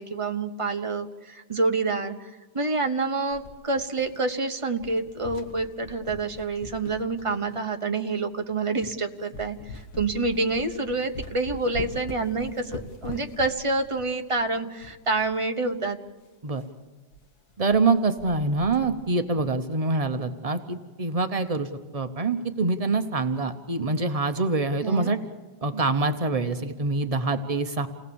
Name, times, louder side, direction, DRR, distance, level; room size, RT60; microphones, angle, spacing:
voice 1, 0.0-2.3 2.5-16.0 24.8-25.1, right 3 dB, 25° right, 6 dB, 0.7 m, -27 dB
sound 1, 3.3-4.4 4.7-7.7 8.3-8.4 8.8-9.0 9.3-15.4 15.7-15.8 16.0-16.1 16.5-16.7 17.1-17.3 17.5-17.9 18.2-19.1, left 3 dB, 55° left, 1.7 m, -42 dB
voice 2, 17.6-25.2 25.6-27.9, right 3 dB, 75° right, 8 dB, 0.3 m, -25 dB
28.5 x 18.5 x 7.0 m, 1.3 s
omnidirectional pair, 2.1 m